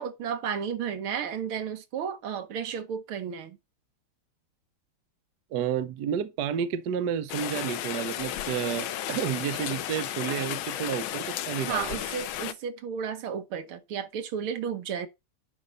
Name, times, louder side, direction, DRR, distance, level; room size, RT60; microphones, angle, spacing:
voice 1, 0.0-3.6 11.7-15.1, right 7 dB, 80° right, 2.0 m, -33 dB
voice 2, 5.5-12.0, right 9 dB, 60° right, 1.2 m, -31 dB
Rain, 7.3-12.5, left 12 dB, 75° left, 1.5 m, -33 dB
11.0 x 4.4 x 5.5 m
omnidirectional pair, 2.3 m